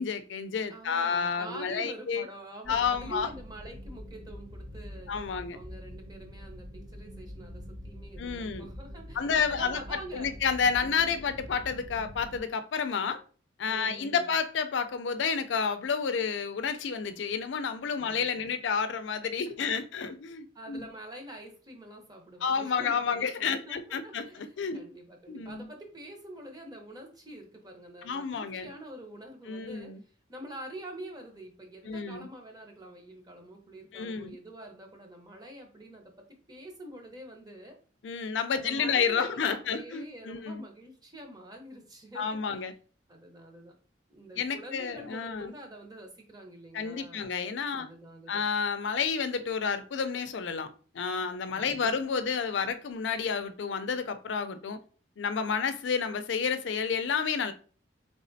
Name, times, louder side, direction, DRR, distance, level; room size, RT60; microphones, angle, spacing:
voice 1, 0.0-2.2 2.7-3.3 5.1-5.6 8.2-8.7 9.1-9.8 10.1-13.2 13.6-20.9 22.4-24.8 25.3-25.6 28.0-28.7 29.5-30.0 31.9-32.3 33.9-34.4 38.0-40.6 42.2-42.7 44.4-45.5 46.7-47.9 48.3-54.8 55.2-57.5, left 6 dB, 85° left, 0.4 m, -30 dB
voice 2, 0.7-5.1 5.5-10.3 11.0-11.3 13.7-14.3 17.9-18.5 19.6-19.7 20.5-29.9 30.3-37.8 38.5-42.7 43.1-43.7 44.1-47.2 47.7-48.4 51.5-51.9, right 1 dB, 20° right, 0.9 m, -46 dB
sound 1, 2.6-12.4, equal, 50° right, 1.2 m, -45 dB
4.1 x 3.5 x 2.6 m
head